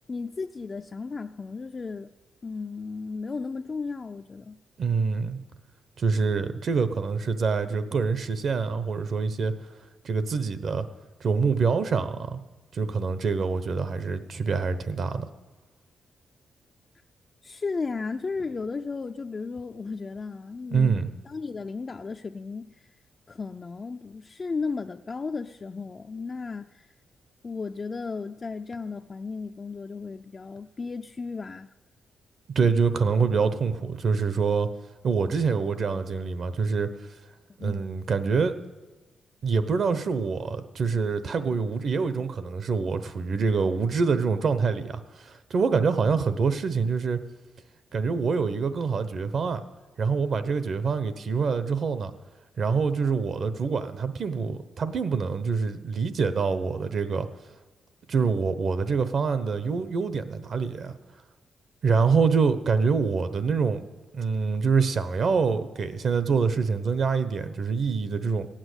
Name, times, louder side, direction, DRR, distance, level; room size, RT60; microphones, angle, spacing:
voice 1, 0.1-2.1 2.4-4.6 17.4-21.0 21.3-22.8 23.3-26.9 27.4-31.7 37.6-37.8, left 4 dB, 35° left, 0.4 m, -34 dB
voice 2, 4.8-5.4 6.0-9.5 10.0-10.9 11.2-12.4 12.7-15.3 20.7-21.1 32.5-34.7 35.0-36.9 37.6-38.5 39.4-47.2 47.9-49.6 50.0-52.1 52.6-57.3 58.1-60.9 61.8-63.8 64.1-68.5, right 5 dB, 55° right, 0.9 m, -25 dB
15.5 x 8.9 x 8.1 m
cardioid pair, 115°, 0 cm